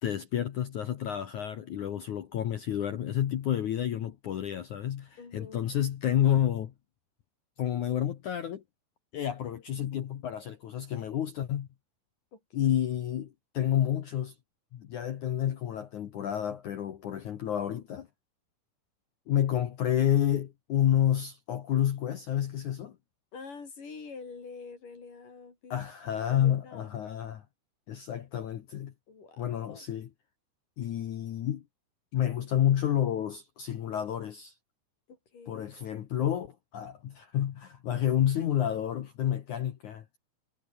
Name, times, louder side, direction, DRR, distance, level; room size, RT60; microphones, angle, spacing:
voice 1, 0.0-6.7 7.6-8.6 9.1-11.7 12.5-14.3 14.7-18.1 19.3-22.9 25.7-27.4 27.9-28.9 29.4-30.1 30.8-31.6 32.1-34.5 35.5-40.0, left 10 dB, 75° left, 1.7 m, -29 dB
voice 2, 5.2-5.6 12.3-12.8 23.3-25.8 26.2-26.9 29.1-29.9 35.1-35.7, left 4 dB, 40° left, 6.2 m, -47 dB
omnidirectional pair, 5.7 m